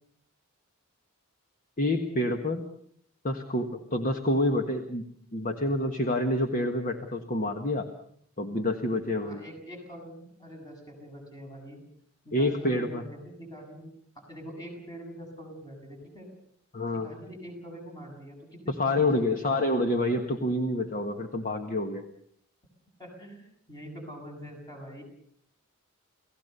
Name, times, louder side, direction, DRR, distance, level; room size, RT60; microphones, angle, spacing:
voice 1, 1.8-2.6 3.2-5.0 5.3-7.9 8.4-9.4 12.3-13.0 16.7-17.1 18.8-22.0, left 1 dB, 40° left, 5 dB, 1.5 m, -27 dB
voice 2, 9.2-11.8 12.2-16.3 16.9-19.6 23.0-25.0, equal, 20° left, 2 dB, 7.5 m, -44 dB
29.5 x 17.5 x 6.8 m, 0.66 s
head